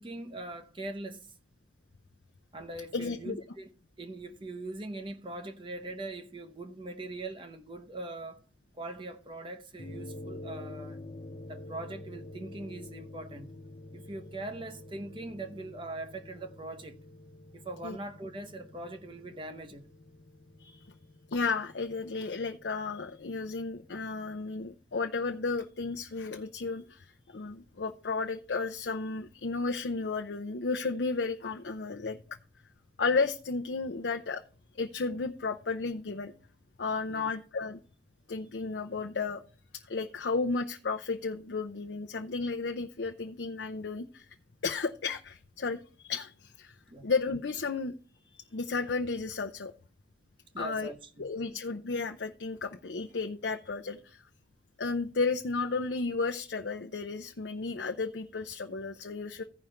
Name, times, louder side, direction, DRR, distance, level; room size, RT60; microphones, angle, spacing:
voice 1, 0.0-1.3 2.5-3.7 4.0-8.4 8.7-11.0 11.5-13.5 13.9-17.0 17.5-19.9 37.1-37.3 46.9-47.1 50.5-51.6, right 2 dB, 25° right, 0.7 m, -41 dB
voice 2, 2.9-3.4 17.8-18.0 20.6-20.8 21.3-32.2 33.0-34.4 34.7-36.3 36.8-37.8 38.3-39.4 39.7-44.3 44.6-46.8 47.0-47.9 48.5-49.7 50.6-50.9 51.2-54.2 54.8-59.4, left 4 dB, 70° left, 0.6 m, -33 dB
sound 1, 9.8-24.3, left 1 dB, 30° left, 0.6 m, -48 dB
15.0 x 5.1 x 4.4 m
head